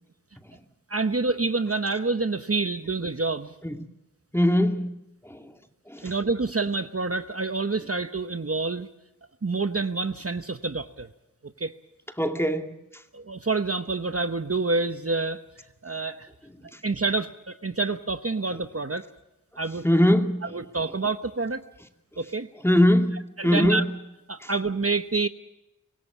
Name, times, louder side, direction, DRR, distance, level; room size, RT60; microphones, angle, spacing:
voice 1, 0.9-3.5 6.0-8.9 9.4-11.1 11.6-11.7 13.1-15.4 15.8-16.3 16.8-19.0 19.6-19.8 20.5-21.6 22.2-22.5 23.4-23.8 24.3-25.3, right 3 dB, 45° right, 0.9 m, -27 dB
voice 2, 4.3-4.9 5.2-5.5 5.9-6.1 12.2-12.7 16.7-16.8 19.8-20.5 22.6-23.9 24.4-24.5, left 1 dB, 5° left, 2.2 m, -22 dB
25.0 x 16.5 x 7.2 m
wide cardioid pair, 40°, 32 cm